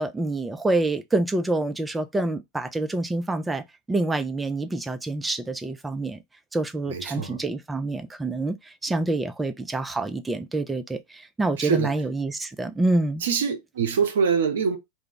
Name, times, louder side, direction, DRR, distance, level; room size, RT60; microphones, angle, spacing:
voice 1, 0.0-6.2 6.5-13.2, right 2 dB, 10° right, 0.4 m, -27 dB
voice 2, 6.9-7.4 11.6-11.9 13.2-14.8, right 6 dB, 60° right, 0.6 m, -24 dB
2.3 x 2.0 x 3.7 m
figure-of-eight pair, 90°, 0 cm